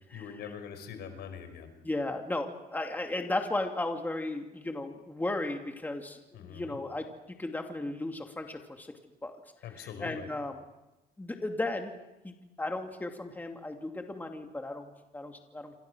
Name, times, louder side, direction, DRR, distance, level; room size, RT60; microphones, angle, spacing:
voice 1, 0.1-1.7 6.3-6.8 9.6-10.3, left 7 dB, 75° left, 8 dB, 5.0 m, -43 dB
voice 2, 1.8-7.1 7.4-8.9 9.2-9.4 9.8-10.5 11.2-11.9 12.2-15.8, left 2 dB, 10° left, 3 dB, 2.7 m, -35 dB
28.0 x 26.5 x 6.3 m, 0.99 s
cardioid pair, 110°, 17 cm